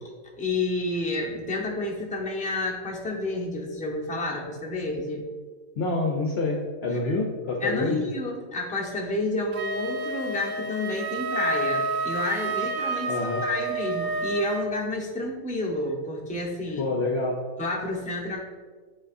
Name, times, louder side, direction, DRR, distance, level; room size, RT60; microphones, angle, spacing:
voice 1, 0.4-5.3 7.6-13.1 13.4-16.9 17.6-18.4, left 2 dB, 5° left, -3 dB, 0.7 m, -30 dB
voice 2, 5.8-8.0 13.1-13.4 16.8-17.4, left 2 dB, 60° left, 1 dB, 0.8 m, -27 dB
Wind instrument woodwind instrument, 9.5-14.7, right 3 dB, 60° right, 0.6 m, -29 dB
9.2 x 4.0 x 2.5 m, 1.5 s
omnidirectional pair, 1.5 m